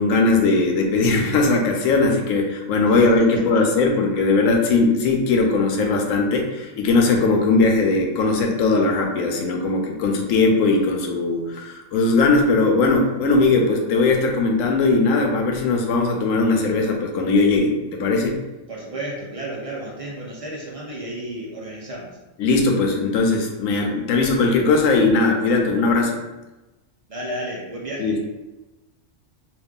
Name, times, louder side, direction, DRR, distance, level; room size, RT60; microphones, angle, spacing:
voice 1, 0.0-18.4 22.4-26.2 28.0-28.2, left 3 dB, 85° left, 2 dB, 1.0 m, -19 dB
voice 2, 18.7-22.2 27.1-28.2, right 1 dB, 55° right, -3 dB, 0.4 m, -32 dB
3.1 x 2.3 x 3.5 m, 1.1 s
omnidirectional pair, 1.3 m